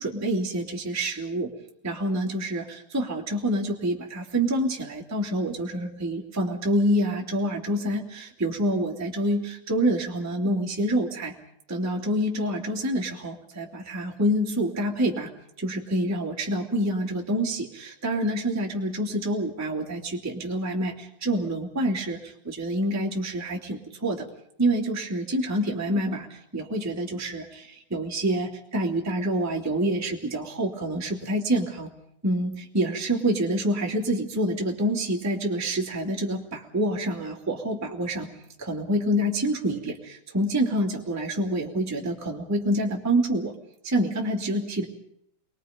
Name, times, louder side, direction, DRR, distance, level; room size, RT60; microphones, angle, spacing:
voice 1, 0.0-1.5 1.8-11.3 11.7-15.3 15.6-24.3 24.6-31.9 32.2-38.3 38.6-43.5 43.8-44.8, right 1 dB, 5° right, -1 dB, 2.1 m, -27 dB
29.5 x 22.5 x 5.3 m, 0.71 s
omnidirectional pair, 4.2 m